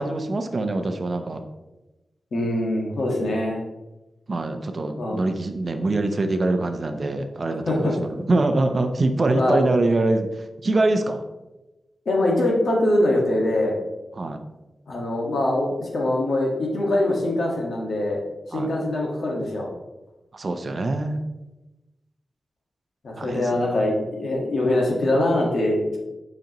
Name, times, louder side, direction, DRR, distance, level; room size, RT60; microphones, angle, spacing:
voice 1, 0.0-1.4 4.3-11.2 14.1-14.4 18.5-18.7 20.3-21.2 23.2-23.5, right 2 dB, 40° right, 6 dB, 0.6 m, -24 dB
voice 2, 2.3-3.6 5.0-5.2 7.7-7.9 9.3-9.6 12.0-13.8 14.9-18.2 18.5-19.7 23.0-26.0, left 1 dB, 70° left, -1 dB, 1.5 m, -23 dB
7.8 x 5.2 x 2.9 m, 1.0 s
wide cardioid pair, 130°, 0 cm